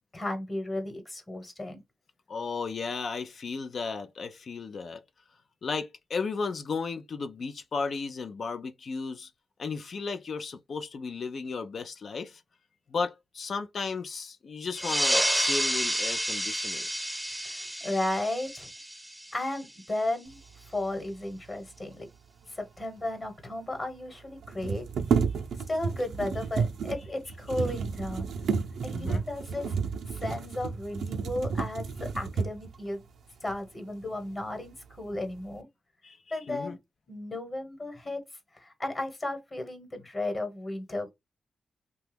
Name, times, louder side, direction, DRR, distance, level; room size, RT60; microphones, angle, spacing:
voice 1, 0.1-1.8 17.4-18.7 19.3-22.1 22.5-24.9 25.7-28.3 28.8-29.7 30.1-33.0 33.4-35.7 36.3-36.8 37.1-38.2 38.5-41.1, left 1 dB, 35° left, 1.1 m, -34 dB
voice 2, 2.3-5.0 5.6-9.3 9.6-12.4 12.9-16.9 28.9-29.2 36.0-36.2 36.5-36.8, left 4 dB, 60° left, 0.4 m, -34 dB
sound 1, 14.7-19.8, equal, ahead, 0.6 m, -30 dB
sound 2, 23.0-23.1 23.2-23.3 24.4-32.8 33.5-33.6 34.0-34.7 35.0-35.6, right 5 dB, 90° right, 0.5 m, -31 dB
2.9 x 2.2 x 3.3 m
cardioid pair, 80°, 0 cm